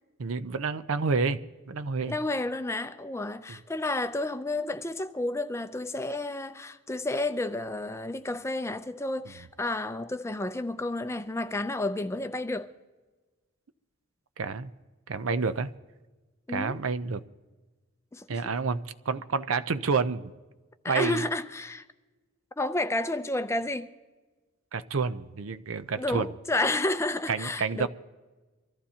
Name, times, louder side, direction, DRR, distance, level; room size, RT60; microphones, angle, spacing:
voice 1, 0.2-1.4 1.7-2.2 3.5-3.6 14.4-14.7 15.1-15.7 16.5-17.2 18.3-20.3 20.9-21.3 24.7-26.3 27.3-27.9, right 4 dB, 65° right, 0.6 m, -29 dB
voice 2, 2.0-12.7 16.5-16.8 18.1-18.5 20.8-21.8 22.6-23.9 26.0-27.9, left 2 dB, 15° left, 0.5 m, -31 dB
24.5 x 14.5 x 2.8 m
head